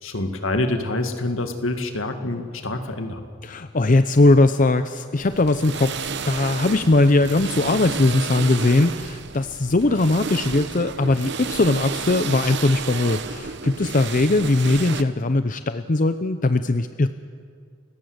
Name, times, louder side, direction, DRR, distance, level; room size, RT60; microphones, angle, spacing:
voice 1, 0.0-3.2, left 2 dB, 70° left, 6 dB, 2.1 m, -26 dB
voice 2, 3.4-17.1, left 2 dB, 40° left, 11 dB, 0.6 m, -20 dB
sound 1, 5.2-15.0, right 5 dB, 55° right, 1.0 m, -31 dB
30.0 x 17.0 x 8.0 m, 2.2 s
head